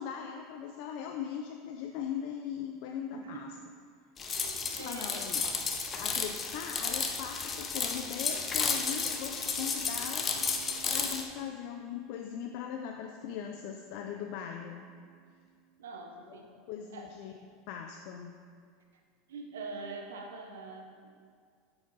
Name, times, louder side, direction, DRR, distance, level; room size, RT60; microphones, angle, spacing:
voice 1, 0.0-3.5 4.5-5.4 6.0-10.6 10.9-14.8 16.3-17.3 17.7-18.3, left 8 dB, 65° left, 3 dB, 0.4 m, -40 dB
voice 2, 3.1-3.5 4.3-5.3 15.8-16.5 16.9-17.1 19.3-21.2, right 4 dB, 90° right, 2 dB, 0.7 m, -44 dB
sound 1, 4.2-11.2, left 5 dB, 30° left, 0.8 m, -33 dB
sound 2, 7.7-16.5, right 1 dB, 50° left, 1.6 m, -56 dB
8.0 x 4.9 x 4.0 m, 2.1 s
hypercardioid pair, 100°, 0 cm